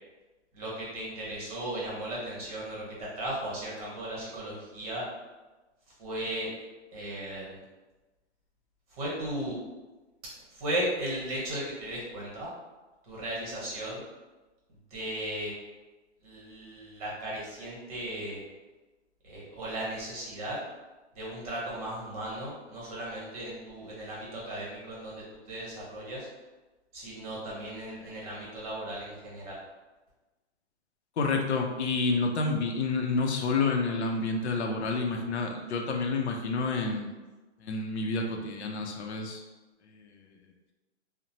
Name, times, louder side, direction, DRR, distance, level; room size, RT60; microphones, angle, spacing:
voice 1, 0.5-5.0 6.0-6.5 6.9-7.6 9.0-9.6 10.5-12.5 13.0-14.0 14.9-15.5 16.2-18.4 19.2-20.6 21.1-26.3 26.9-29.6, right 1 dB, 30° right, -5 dB, 0.9 m, -36 dB
voice 2, 31.2-37.1 37.6-39.4 39.9-40.2, left 3 dB, 70° left, 2 dB, 0.5 m, -29 dB
2.8 x 2.0 x 2.7 m, 1.2 s
hypercardioid pair, 160°, 35 cm